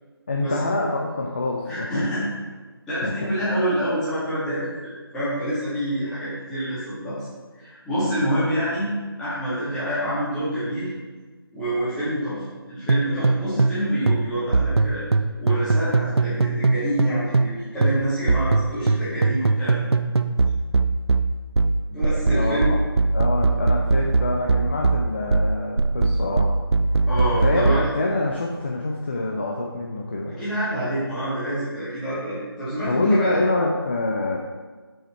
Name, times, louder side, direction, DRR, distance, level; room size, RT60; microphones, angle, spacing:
voice 1, 0.3-2.1 3.0-3.3 22.3-22.8 23.1-26.5 27.4-30.4 32.9-34.4, left 2 dB, 25° left, -1 dB, 0.5 m, -25 dB
voice 2, 1.7-2.2 2.9-7.3 7.5-8.9 9.2-10.9 11.5-15.0 15.4-19.9 21.9-22.7 27.1-27.9 30.3-33.4, equal, 5° left, -14 dB, 2.0 m, -27 dB
sound 1, 12.9-13.8 14.1-17.6 17.8-27.9, right 3 dB, 90° right, 0.5 m, -20 dB
7.5 x 5.2 x 4.4 m, 1.3 s
figure-of-eight pair, 165°, 13 cm